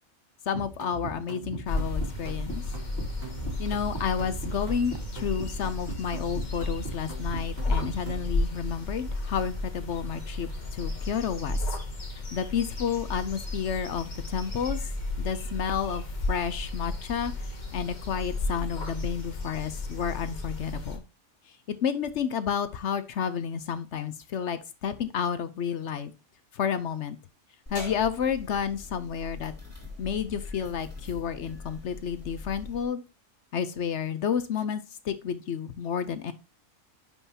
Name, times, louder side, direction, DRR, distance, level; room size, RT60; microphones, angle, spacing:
voice 1, 0.5-2.6 3.6-11.6 12.3-14.8 15.2-16.0 16.3-17.3 17.7-21.0 21.7-26.1 26.5-27.2 27.7-29.5 30.0-33.0 33.5-36.3, left 7 dB, 60° left, 12 dB, 0.9 m, -31 dB
sound 1, 0.5-8.3, right 4 dB, 40° right, 2.9 m, -39 dB
sound 2, 1.7-21.0, left 2 dB, 35° left, 1.5 m, -33 dB
sound 3, 27.7-32.9, left 3 dB, 10° left, 2.5 m, -42 dB
9.9 x 5.5 x 2.8 m, 0.27 s
omnidirectional pair, 1.5 m